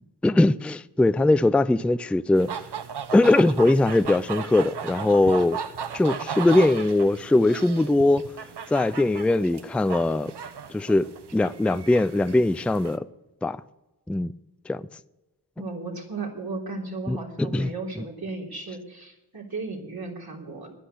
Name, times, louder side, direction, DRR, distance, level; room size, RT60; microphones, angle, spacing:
voice 1, 0.2-2.5 3.1-5.6 5.9-8.3 8.7-10.3 10.7-13.1 13.4-13.6 14.1-14.3 14.7-14.9 17.1-17.7, left 2 dB, 5° left, 0.3 m, -21 dB
Geese and some pigeons, 2.3-13.0, right 6 dB, 75° right, 0.9 m, -36 dB
voice 2, 15.6-20.7, right 3 dB, 60° right, 3.6 m, -35 dB
10.5 x 9.9 x 8.1 m
wide cardioid pair, 55°, 41 cm